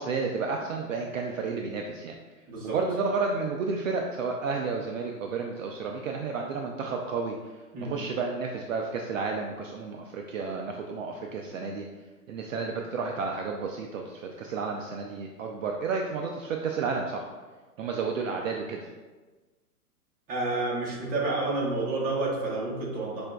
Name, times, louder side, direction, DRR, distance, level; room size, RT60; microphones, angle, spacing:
voice 1, 0.0-2.2 2.6-7.4 7.8-11.9 12.3-17.2 17.8-18.8, right 4 dB, 60° right, 1 dB, 0.5 m, -31 dB
voice 2, 2.5-2.8 7.7-8.0 20.3-23.2, right 2 dB, 20° right, -5 dB, 1.0 m, -29 dB
6.2 x 2.5 x 2.3 m, 1.3 s
figure-of-eight pair, 115°, 46 cm